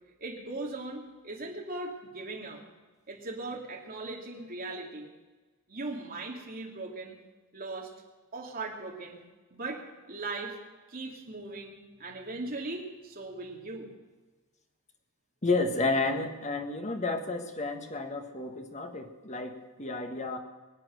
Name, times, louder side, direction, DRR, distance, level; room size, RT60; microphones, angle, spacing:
voice 1, 0.2-2.6 3.1-5.1 5.7-7.2 7.5-7.9 8.3-9.2 9.5-10.6 10.9-13.9, right 2 dB, 45° right, 0 dB, 2.7 m, -39 dB
voice 2, 15.4-20.4, left 3 dB, 35° left, 5 dB, 1.6 m, -31 dB
22.5 x 8.8 x 6.5 m, 1.3 s
head